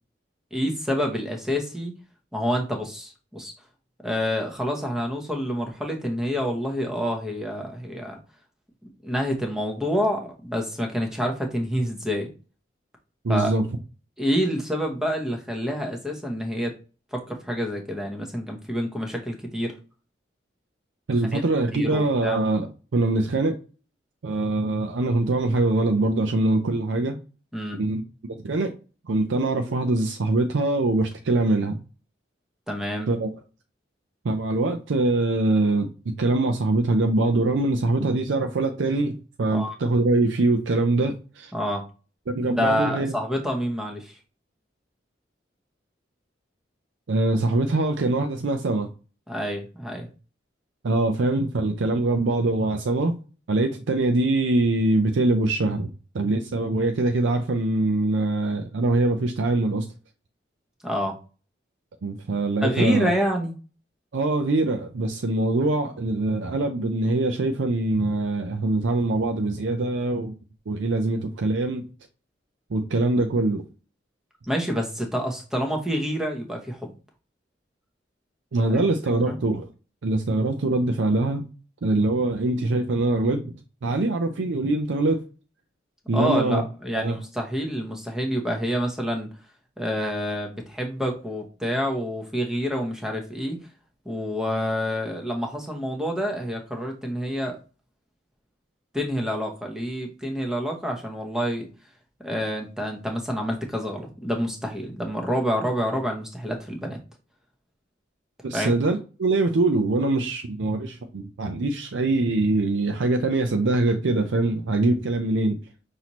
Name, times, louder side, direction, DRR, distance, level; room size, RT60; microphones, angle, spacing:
voice 1, 0.5-1.9 2.3-3.5 4.0-8.2 9.0-12.3 13.3-13.5 14.2-16.8 17.1-19.7 21.3-21.4 21.7-22.4 27.5-27.8 32.7-33.1 39.5-39.7 41.5-41.8 42.5-44.2 49.3-50.1 60.8-61.2 62.6-63.5 74.5-76.9 78.7-78.8 79.3-79.4 86.1-89.3 89.8-93.6 94.0-97.6 98.9-101.7 102.2-107.0 108.5-108.7, equal, 5° right, 0.8 m, -27 dB
voice 2, 13.2-13.7 21.1-23.6 24.2-27.2 27.8-28.0 28.4-28.7 29.1-31.8 33.1-33.3 34.2-41.5 42.3-43.1 47.1-48.9 50.8-53.1 53.5-55.9 56.1-59.9 62.0-63.1 64.1-70.3 70.7-71.8 72.7-73.6 78.5-79.7 80.0-81.5 81.8-83.5 83.8-85.2 86.1-86.6 86.9-87.2 108.4-115.6, right 2 dB, 85° right, 0.5 m, -23 dB
5.8 x 2.7 x 3.0 m
head